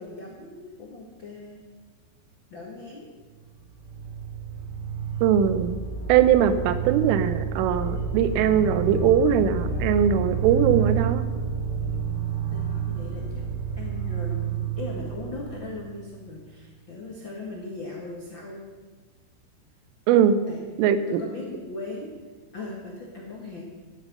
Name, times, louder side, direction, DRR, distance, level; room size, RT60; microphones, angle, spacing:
voice 1, 0.0-1.6 2.5-3.1 12.5-13.4 13.7-18.6 20.5-20.6 21.1-22.1 22.5-23.6, left 3 dB, 80° left, -3 dB, 1.0 m, -38 dB
sound 1, 3.4-16.3, right 6 dB, 35° right, 1.9 m, -29 dB
voice 2, 5.2-5.8 6.1-11.2 20.1-20.5 20.8-21.2, right 8 dB, 85° right, 12 dB, 3.3 m, -21 dB
14.0 x 11.0 x 5.6 m, 1.3 s
omnidirectional pair, 5.7 m